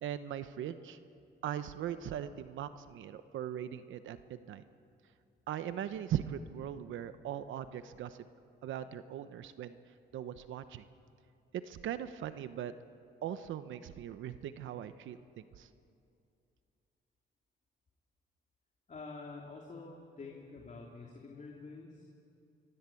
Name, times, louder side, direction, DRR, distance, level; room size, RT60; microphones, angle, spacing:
voice 1, 0.0-1.0 1.4-4.6 5.5-8.2 8.6-9.8 10.1-10.8 11.5-12.7 13.2-15.7, right 10 dB, 75° right, 11 dB, 0.9 m, -40 dB
voice 2, 18.9-22.1, left 3 dB, 40° left, -1 dB, 3.1 m, -47 dB
25.5 x 22.0 x 8.5 m, 2.5 s
cardioid pair, 90°, 20 cm